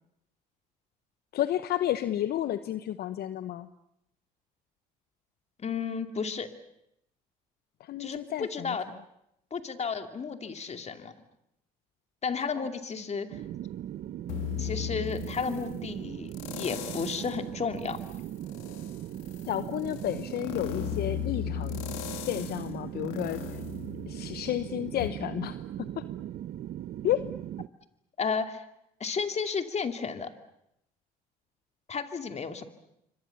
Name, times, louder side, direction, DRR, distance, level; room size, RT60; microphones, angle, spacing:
voice 1, 1.3-3.7 7.8-8.8 19.5-21.8 22.3-23.4 24.1-26.0 27.0-27.3, left 12 dB, 60° left, 12 dB, 1.0 m, -31 dB
voice 2, 5.6-6.5 8.0-8.8 9.5-11.1 12.2-13.3 14.6-18.0 28.2-28.7 29.0-30.3 31.9-32.7, left 5 dB, 40° left, 7 dB, 2.6 m, -33 dB
sound 1, 13.3-27.7, right 12 dB, 60° right, 0.9 m, -39 dB
sound 2, 14.3-15.7 16.3-17.4 17.8-24.5 25.0-25.1, left 14 dB, 85° left, 2.7 m, -37 dB
28.0 x 24.5 x 7.1 m, 0.79 s
supercardioid pair, 75°, 18 cm